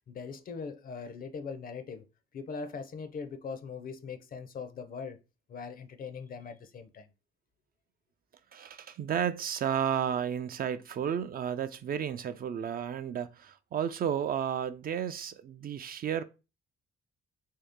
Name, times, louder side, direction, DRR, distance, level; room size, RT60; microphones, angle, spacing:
voice 1, 0.1-2.1 2.3-5.2 5.5-7.1, left 5 dB, 45° left, 0.5 m, -41 dB
voice 2, 8.5-16.2, right 8 dB, 50° right, 0.4 m, -32 dB
3.1 x 2.8 x 3.5 m
cardioid pair, 90°, 20 cm